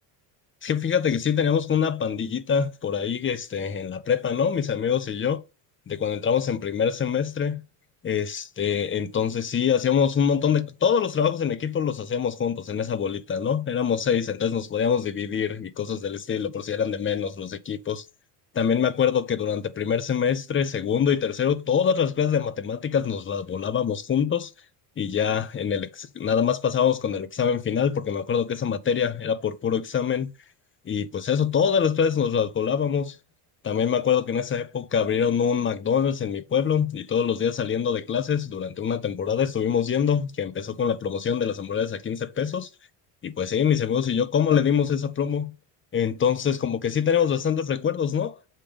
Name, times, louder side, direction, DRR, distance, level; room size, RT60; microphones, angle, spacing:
voice 1, 0.6-5.4 5.9-7.6 8.0-18.0 18.5-24.5 25.0-30.3 30.9-33.2 33.6-42.7 43.2-45.5 45.9-48.4, left 7 dB, 25° left, 0.7 m, -24 dB
7.3 x 3.5 x 5.1 m
supercardioid pair, 100°, 48 cm